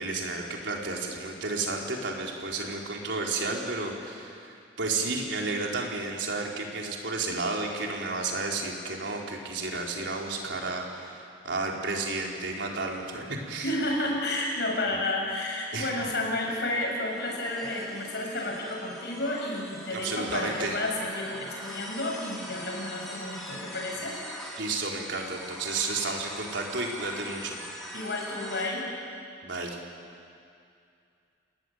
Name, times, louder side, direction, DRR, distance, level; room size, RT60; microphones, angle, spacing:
voice 1, 0.0-13.7 15.7-15.9 19.9-20.8 24.6-27.6 29.4-29.8, right 3 dB, 75° right, 0 dB, 4.3 m, -32 dB
voice 2, 13.6-24.2 27.9-28.9, left 1 dB, 65° left, -1 dB, 7.2 m, -31 dB
sound 1, 16.1-28.7, equal, ahead, 6.4 m, -43 dB
29.0 x 20.0 x 9.3 m, 2.5 s
head